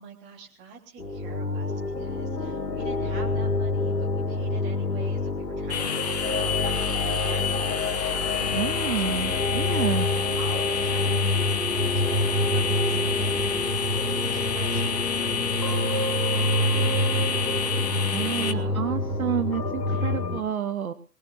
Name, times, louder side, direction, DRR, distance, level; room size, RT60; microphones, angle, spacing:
voice 1, 0.0-18.9 19.9-20.3, right 6 dB, 20° right, 0 dB, 3.3 m, -47 dB
sound 1, 1.0-20.4, left 2 dB, 85° left, 1.7 m, -27 dB
sound 2, 5.7-18.5, left 7 dB, 25° left, 0.7 m, -29 dB
voice 2, 8.5-10.1 18.1-20.9, right 8 dB, 60° right, 10 dB, 1.0 m, -29 dB
23.0 x 18.5 x 2.5 m, 0.39 s
figure-of-eight pair, 125°, 48 cm